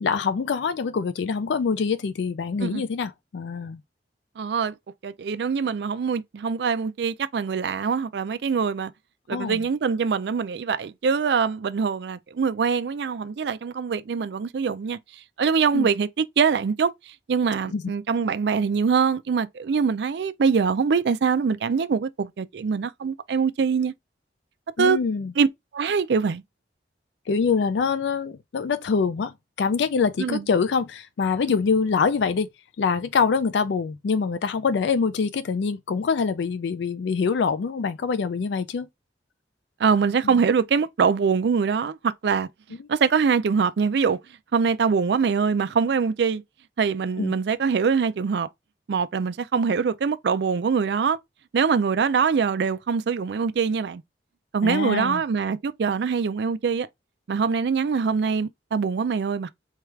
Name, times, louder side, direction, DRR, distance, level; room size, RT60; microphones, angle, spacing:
voice 1, 0.0-3.8 9.3-9.6 15.7-15.9 17.7-17.8 24.8-25.3 27.3-32.5 32.8-38.9 40.2-40.4 47.2-47.3 54.6-55.2, left 5 dB, 80° left, 0.4 m, -25 dB
voice 2, 4.4-4.7 5.0-8.9 9.3-15.0 15.4-16.9 17.3-23.9 24.8-25.0 25.4-25.5 25.7-26.4 30.2-30.4 39.8-42.5 42.9-44.2 44.5-46.4 46.8-48.5 48.9-51.2 51.5-54.0 54.5-56.9 57.3-59.5, right 5 dB, 65° right, 0.4 m, -23 dB
4.6 x 2.4 x 3.2 m
head